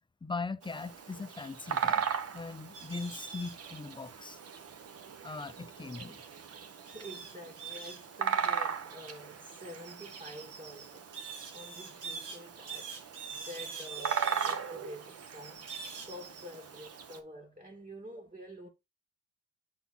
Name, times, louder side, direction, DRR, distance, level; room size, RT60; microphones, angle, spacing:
voice 1, 0.2-2.0 2.3-4.4 5.2-6.2, left 4 dB, 15° left, 0.6 m, -40 dB
Bird vocalization bird call bird song, 0.6-17.2, right 7 dB, 55° right, 1.2 m, -38 dB
sound 1, 2.7-3.6 6.9-8.0 11.1-12.4 12.7-14.6 15.7-16.1 16.5-16.8, right 5 dB, 80° right, 2.3 m, -43 dB
voice 2, 6.8-12.9 13.3-18.7, equal, 30° right, 2.7 m, -48 dB
8.1 x 4.2 x 4.1 m
cardioid pair, 90°, 30 cm